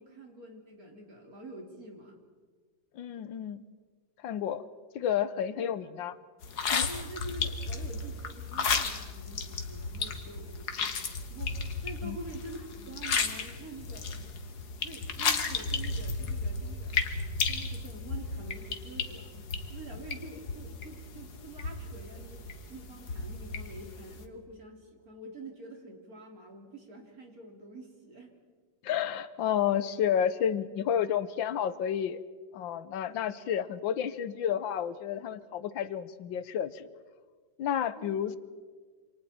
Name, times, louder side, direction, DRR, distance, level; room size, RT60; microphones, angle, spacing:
voice 1, 0.0-2.2 5.5-5.7 6.9-11.0 11.3-14.1 14.8-17.1 17.5-19.3 19.7-28.4 38.0-38.4, right 2 dB, 50° right, 1 dB, 3.6 m, -47 dB
voice 2, 2.9-3.6 4.2-4.6 4.9-6.2 6.7-6.9 12.0-12.2 28.8-32.2 32.5-36.9 37.6-38.4, left 9 dB, 85° left, 14 dB, 1.6 m, -31 dB
sound 1, 6.4-24.2, left 5 dB, 60° left, 1.9 m, -34 dB
28.0 x 26.0 x 4.3 m, 1.5 s
omnidirectional pair, 2.0 m